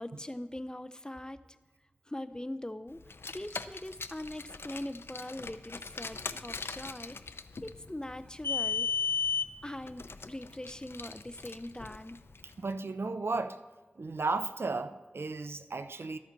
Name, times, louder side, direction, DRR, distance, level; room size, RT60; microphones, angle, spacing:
voice 1, 0.0-1.4 2.1-3.0 3.3-7.2 7.6-8.9 9.6-12.2, left 1 dB, 20° left, 13 dB, 0.5 m, -41 dB
Car, 3.0-12.5, left 5 dB, 75° left, 0.4 m, -37 dB
voice 2, 12.6-13.6 14.0-16.2, right 3 dB, 80° right, 11 dB, 0.5 m, -34 dB
13.0 x 9.0 x 3.9 m, 1.2 s
wide cardioid pair, 50°, 4 cm